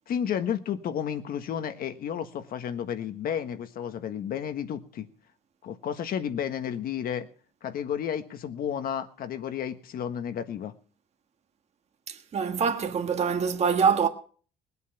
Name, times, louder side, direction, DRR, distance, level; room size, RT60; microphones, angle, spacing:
voice 1, 0.1-5.1 5.6-7.3 7.6-10.7, left 8 dB, 60° left, 1.4 m, -32 dB
voice 2, 12.1-14.1, right 6 dB, 40° right, 1.5 m, -25 dB
19.5 x 8.4 x 5.8 m
cardioid pair, 110°, 17 cm